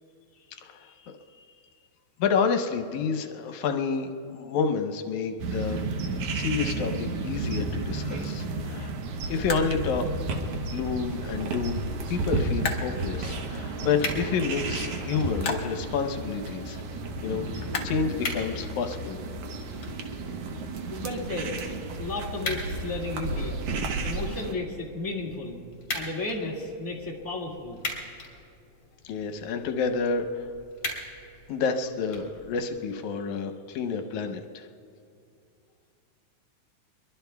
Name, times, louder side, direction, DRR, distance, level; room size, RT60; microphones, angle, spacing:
voice 1, 0.5-1.1 2.2-5.8 6.3-8.9 9.3-10.1 10.5-11.8 12.1-16.8 17.2-19.2 29.0-30.5 31.5-34.7, left 5 dB, 80° left, 5 dB, 2.2 m, -29 dB
sound 1, 5.4-24.5, right 3 dB, 65° right, 1.8 m, -32 dB
sound 2, 5.6-18.8, left 4 dB, 60° left, 1.0 m, -41 dB
sound 3, 13.9-32.9, left 2 dB, 40° left, 3.2 m, -41 dB
voice 2, 20.9-21.6 22.0-23.6 24.0-25.6 25.9-27.8, left 2 dB, 10° left, -3 dB, 1.3 m, -33 dB
24.5 x 22.5 x 2.3 m, 2.4 s
omnidirectional pair, 3.4 m